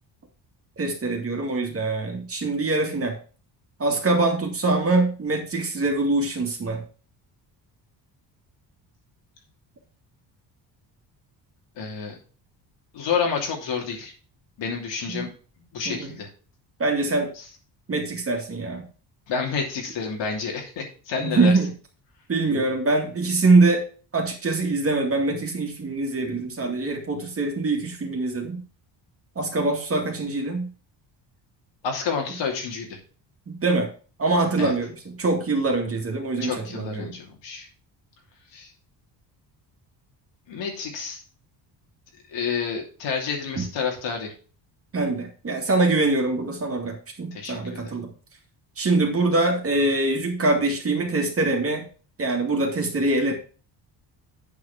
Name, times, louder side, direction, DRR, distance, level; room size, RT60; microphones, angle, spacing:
voice 1, 0.8-3.2 3.8-6.8 15.1-15.2 15.9-16.1 16.8-17.3 17.9-18.8 21.2-21.7 22.3-23.8 24.1-28.6 29.4-30.7 33.5-33.9 34.2-34.9 35.2-37.1 43.6-43.7 44.9-48.1 48.8-51.8 52.2-53.3, right 2 dB, 30° right, 2 dB, 2.4 m, -23 dB
voice 2, 11.8-12.2 12.9-14.1 14.6-15.3 15.7-16.3 17.4-17.5 19.3-21.5 31.8-33.0 34.6-34.7 36.4-37.7 38.5-38.7 40.5-41.2 42.3-44.3 47.3-47.9, left 5 dB, 75° left, 1 dB, 3.0 m, -29 dB
8.6 x 4.9 x 5.9 m, 0.38 s
cardioid pair, 125°, 44 cm